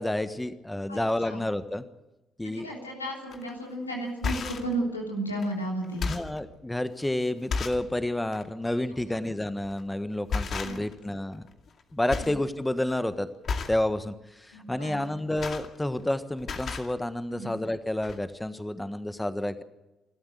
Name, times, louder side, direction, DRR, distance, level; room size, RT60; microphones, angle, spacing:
voice 1, 0.0-1.8 2.4-2.7 6.1-11.5 11.9-13.3 13.7-19.6, left 1 dB, 10° left, 12 dB, 1.4 m, -30 dB
voice 2, 2.4-6.1 10.6-10.8 12.2-12.3 14.5-15.0 17.3-17.5, right 1 dB, 90° left, -1 dB, 3.3 m, -33 dB
sound 1, 3.3-3.5 4.1-4.7 5.4-5.5 5.8-6.4 7.0-7.1 7.5-7.9 8.3-8.5 9.6-9.9 10.3-11.0 11.3-11.8 12.1-12.4 12.7-13.0 13.4-13.8 15.0-16.1 16.4-16.9 17.7-17.8 18.0-18.2, left 4 dB, 50° left, 2.3 m, -33 dB
28.5 x 13.0 x 8.0 m, 1.0 s
figure-of-eight pair, 45°, 0 cm